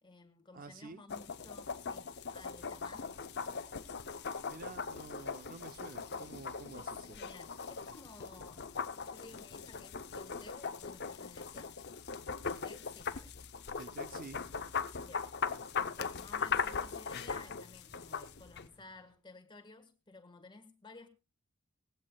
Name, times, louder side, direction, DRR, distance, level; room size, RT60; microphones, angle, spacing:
voice 1, 0.0-3.2 6.8-11.8 12.4-13.4 15.0-15.3 16.0-21.1, left 3 dB, 20° left, 1.5 m, -55 dB
voice 2, 0.5-1.0 4.4-7.2 13.8-14.4, right 3 dB, 40° right, 0.6 m, -49 dB
sound 1, 1.1-18.7, left 5 dB, 50° left, 0.7 m, -40 dB
sound 2, 13.6-19.1, equal, 10° right, 7.9 m, -70 dB
19.0 x 16.0 x 2.3 m
head